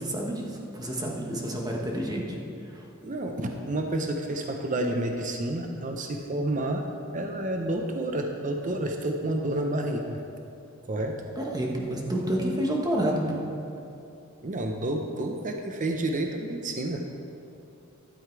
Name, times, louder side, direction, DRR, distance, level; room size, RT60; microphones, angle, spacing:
voice 1, 0.0-2.4 11.4-13.4, right 1 dB, 20° right, -1 dB, 1.4 m, -29 dB
voice 2, 3.0-6.8 7.1-10.2 10.8-11.2 14.4-17.1, right 1 dB, 40° right, 3 dB, 0.7 m, -30 dB
12.5 x 7.8 x 4.7 m, 2.8 s
head